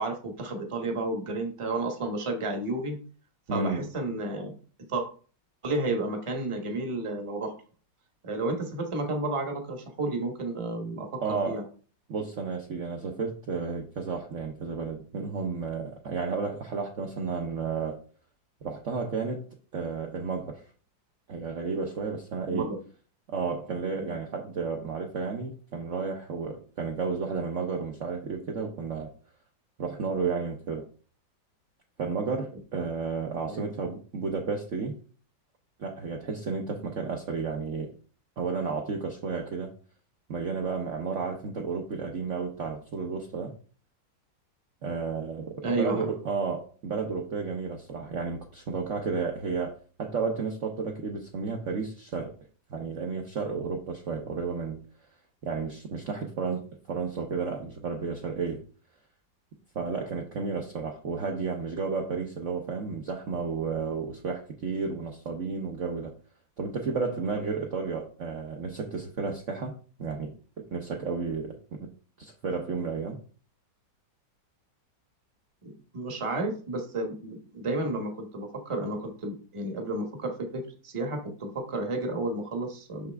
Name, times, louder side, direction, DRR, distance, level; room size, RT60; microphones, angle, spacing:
voice 1, 0.0-3.0 3.5-4.5 4.9-5.0 5.6-7.5 8.2-11.1 11.4-11.6 22.5-22.8 23.9-24.2 33.5-33.7 45.6-46.1 75.6-83.1, right 2 dB, 20° right, 3 dB, 1.0 m, -32 dB
voice 2, 3.5-3.9 11.2-11.6 12.1-18.0 18.6-19.4 19.7-20.6 21.3-22.7 23.3-29.1 29.8-30.8 32.0-35.0 35.8-37.9 38.4-39.7 40.3-43.5 44.8-52.3 52.7-54.8 55.4-56.6 56.9-58.6 59.7-66.1 66.6-71.9 72.2-73.2, right 5 dB, 55° right, 1 dB, 0.9 m, -32 dB
6.3 x 5.7 x 3.4 m, 0.40 s
omnidirectional pair, 2.1 m